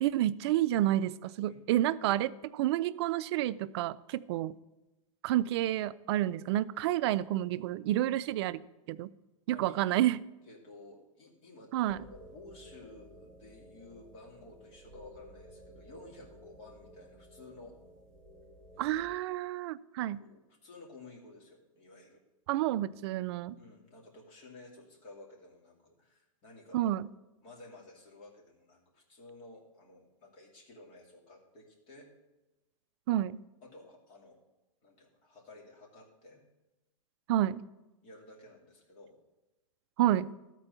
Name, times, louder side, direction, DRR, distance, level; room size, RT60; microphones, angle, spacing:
voice 1, 0.0-4.6 5.2-8.6 8.9-9.1 9.5-10.2 11.7-12.0 18.8-20.2 22.5-23.6 26.7-27.1 33.1-33.4 37.3-37.6 40.0-40.3, right 13 dB, 50° right, 16 dB, 0.4 m, -29 dB
voice 2, 1.5-2.1 9.5-9.9 10.4-17.8 18.7-18.9 20.2-22.2 23.6-27.0 27.4-32.1 33.6-34.4 34.8-36.4 38.0-39.2, left 2 dB, 35° left, -1 dB, 2.6 m, -53 dB
sound 1, 11.9-19.2, right 1 dB, 5° left, 1.0 m, -54 dB
13.0 x 4.5 x 6.8 m, 1.0 s
supercardioid pair, 150°, 17 cm